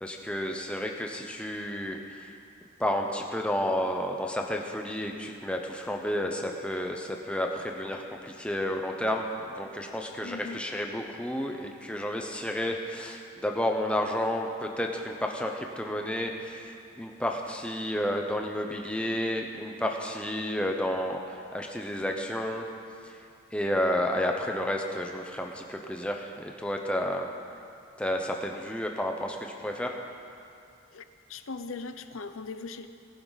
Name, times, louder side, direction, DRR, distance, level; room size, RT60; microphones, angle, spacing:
voice 1, 0.0-2.3 2.8-16.7 17.0-22.7 23.5-27.3 28.0-29.9, left 1 dB, 5° left, 2 dB, 0.9 m, -31 dB
voice 2, 10.2-10.6 30.9-32.9, left 4 dB, 80° left, 10 dB, 0.7 m, -39 dB
20.0 x 11.0 x 4.1 m, 2.5 s
head